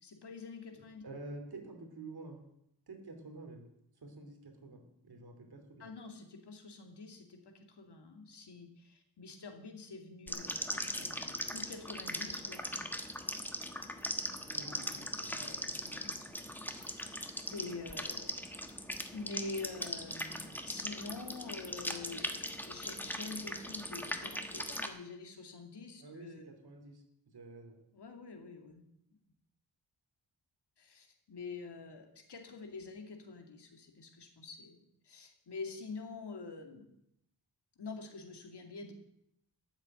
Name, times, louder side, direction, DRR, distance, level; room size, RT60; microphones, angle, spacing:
voice 1, 0.0-1.2 5.8-12.9 14.6-15.0 15.3-16.2 16.8-18.4 19.1-26.5 27.9-28.8 30.8-36.9 37.8-38.9, left 3 dB, 70° left, 4 dB, 2.4 m, -47 dB
voice 2, 1.0-2.4 2.9-3.6 4.0-5.9 14.5-15.5 26.0-27.8, right 3 dB, 60° right, 4 dB, 3.1 m, -49 dB
sound 1, 10.3-24.9, left 1 dB, 5° left, 1.2 m, -40 dB
13.0 x 7.4 x 9.0 m, 0.78 s
wide cardioid pair, 110°, 42 cm